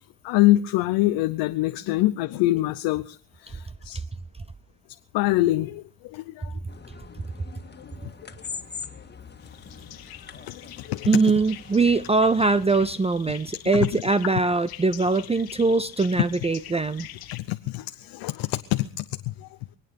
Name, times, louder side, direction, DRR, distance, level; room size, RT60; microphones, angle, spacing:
voice 1, 0.2-3.2 3.4-4.0 5.1-6.5 10.5-11.1 13.7-13.9 17.3-19.5, left 17 dB, 85° left, 8 dB, 0.8 m, -25 dB
sound 1, 6.7-13.0, left 5 dB, 25° left, 1.9 m, -43 dB
sound 2, 9.4-17.4, left 13 dB, 70° left, 1.4 m, -45 dB
voice 2, 11.1-17.1, right 3 dB, 15° right, 15 dB, 0.6 m, -22 dB
25.0 x 9.0 x 5.2 m, 0.41 s
supercardioid pair, 75°, 39 cm